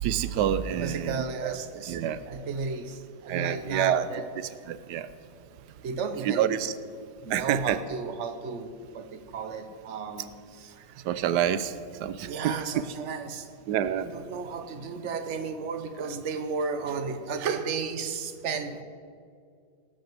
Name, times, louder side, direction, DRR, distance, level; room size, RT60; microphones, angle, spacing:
voice 1, 0.0-1.6 1.9-2.2 3.3-4.1 4.7-5.1 6.2-6.7 7.3-7.8 11.0-11.7 12.0-12.6 13.7-14.1, right 10 dB, 80° right, 14 dB, 1.2 m, -27 dB
voice 2, 0.8-2.0 2.3-4.2 5.8-6.7 7.2-10.3 10.6-11.0 12.2-13.5 14.1-18.8, right 5 dB, 50° right, 8 dB, 1.1 m, -33 dB
18.5 x 6.4 x 7.5 m, 2.2 s
omnidirectional pair, 1.8 m